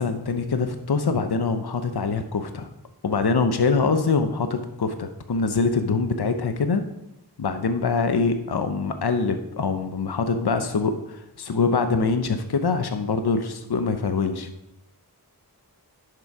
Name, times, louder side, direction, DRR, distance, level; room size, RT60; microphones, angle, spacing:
voice 1, 0.0-2.7 3.0-6.8 7.4-14.5, left 4 dB, 70° left, 8 dB, 0.9 m, -24 dB
10.5 x 6.9 x 4.9 m, 0.87 s
wide cardioid pair, 40°, 40 cm